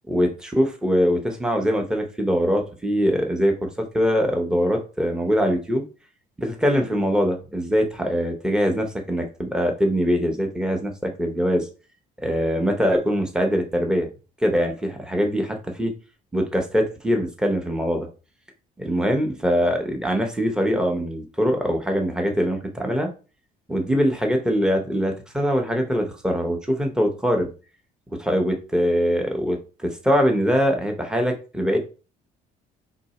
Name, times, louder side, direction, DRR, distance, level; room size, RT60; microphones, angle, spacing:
voice 1, 0.1-5.8 6.4-11.7 12.2-14.1 14.4-15.9 16.3-18.1 18.8-23.1 23.7-27.5 28.2-31.8, equal, 5° right, 3 dB, 0.8 m, -23 dB
2.8 x 2.6 x 4.1 m, 0.34 s
cardioid pair, 110°, 17 cm